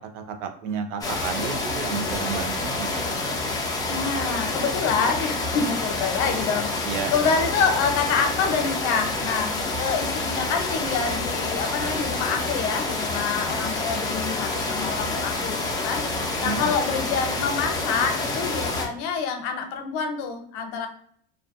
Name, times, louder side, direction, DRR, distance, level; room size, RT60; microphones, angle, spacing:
voice 1, 0.1-3.1 6.8-7.1 16.4-16.7, right 6 dB, 75° right, 6 dB, 0.6 m, -31 dB
sound 1, 1.0-18.9, left 2 dB, 10° left, 0.4 m, -28 dB
voice 2, 3.9-20.9, left 5 dB, 70° left, 5 dB, 0.7 m, -27 dB
2.4 x 2.4 x 2.3 m, 0.62 s
supercardioid pair, 105°, 37 cm